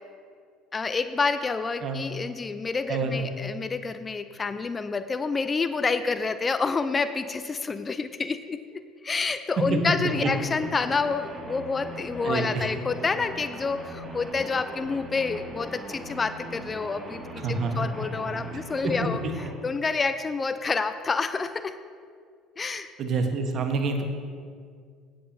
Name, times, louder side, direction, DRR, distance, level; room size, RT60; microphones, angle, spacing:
voice 1, 0.7-17.2 17.8-19.2 19.6-21.7 22.6-22.9, left 4 dB, 25° left, 11 dB, 0.4 m, -28 dB
voice 2, 2.9-3.3 10.2-10.3 12.2-12.7 17.4-17.8 18.8-19.1 23.0-24.0, right 4 dB, 45° right, 5 dB, 1.2 m, -27 dB
sound 1, 10.0-19.5, equal, 10° right, 2.2 m, -40 dB
16.5 x 7.7 x 2.8 m, 2.1 s
figure-of-eight pair, 60°, 0 cm